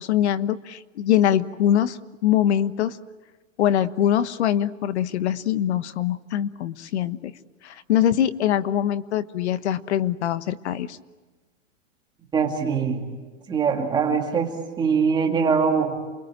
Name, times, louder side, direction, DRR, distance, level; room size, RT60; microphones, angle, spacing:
voice 1, 0.0-3.0 3.6-7.3 7.6-11.0, left 11 dB, 55° left, 13 dB, 1.4 m, -23 dB
voice 2, 12.3-13.0 13.5-14.5 14.8-16.0, right 6 dB, 10° right, 2 dB, 2.5 m, -22 dB
28.5 x 21.5 x 9.0 m, 1.3 s
supercardioid pair, 170°, 39 cm